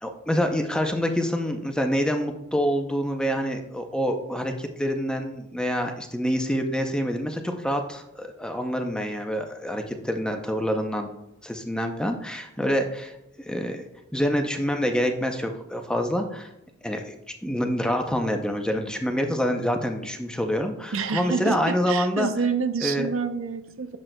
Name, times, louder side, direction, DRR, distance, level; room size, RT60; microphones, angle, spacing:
voice 1, 0.0-11.1 11.4-13.1 13.4-13.8 14.1-16.5 16.8-17.2 17.4-22.3 22.8-23.1, equal, 5° left, 4 dB, 0.5 m, -26 dB
voice 2, 20.9-24.0, right 5 dB, 65° right, 9 dB, 0.5 m, -28 dB
9.9 x 7.4 x 2.2 m, 0.89 s
head